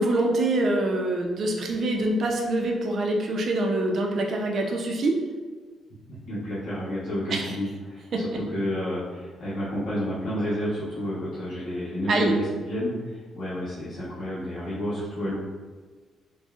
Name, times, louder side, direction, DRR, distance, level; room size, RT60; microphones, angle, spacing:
voice 1, 0.0-5.2 7.3-7.6 8.1-8.2 12.1-12.3, right 2 dB, 55° right, 1 dB, 0.7 m, -25 dB
voice 2, 6.3-15.3, equal, 55° left, -10 dB, 1.2 m, -30 dB
6.2 x 2.3 x 2.5 m, 1.4 s
cardioid pair, 90°, 0 cm